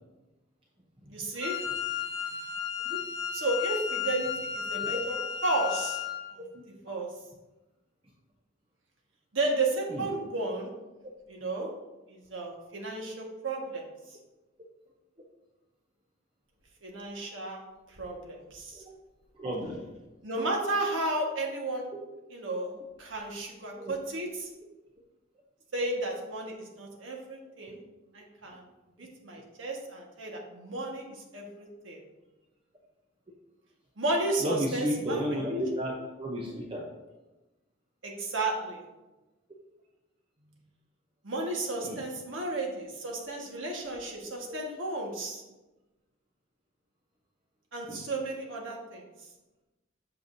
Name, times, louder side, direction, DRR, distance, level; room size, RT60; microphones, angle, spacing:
voice 1, 1.1-1.5 3.3-5.1 5.4-6.0 6.3-6.4 6.8-7.1 9.3-10.7 11.3-11.7 12.1-13.8 16.8-17.6 18.0-18.8 20.2-21.8 22.3-22.7 23.0-24.5 25.7-27.8 28.1-28.6 29.0-31.0 31.3-32.0 34.0-35.3 38.0-38.8 41.2-45.4 47.7-49.0, right 2 dB, 70° right, 0 dB, 1.5 m, -33 dB
Wind instrument woodwind instrument, 1.4-6.2, left 8 dB, 60° left, 1.4 m, -33 dB
voice 2, 4.9-5.2 9.9-10.1 18.7-19.0 19.3-19.8 23.7-23.9 29.0-29.1 34.4-36.9 41.8-42.0 47.9-48.1, equal, 25° right, -2 dB, 0.7 m, -33 dB
7.8 x 6.8 x 2.7 m, 1.1 s
head